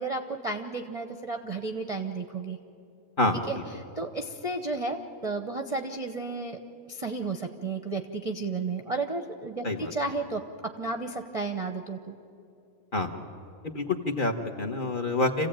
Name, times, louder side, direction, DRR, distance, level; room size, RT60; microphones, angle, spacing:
voice 1, 0.0-2.6 3.5-3.6 4.0-6.6 6.9-12.1, right 3 dB, 30° right, 5 dB, 0.8 m, -33 dB
voice 2, 3.2-3.6 9.6-9.9 12.9-13.2 13.6-15.5, left 2 dB, 35° left, 3 dB, 1.5 m, -28 dB
27.5 x 15.5 x 8.9 m, 2.7 s
omnidirectional pair, 1.6 m